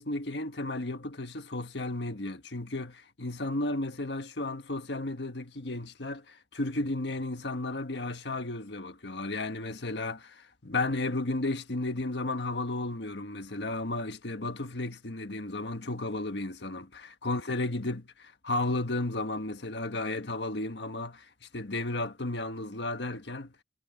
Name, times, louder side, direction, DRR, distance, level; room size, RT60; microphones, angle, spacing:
voice 1, 0.0-21.2 21.5-23.5, left 2 dB, 75° left, 1.5 m, -33 dB
head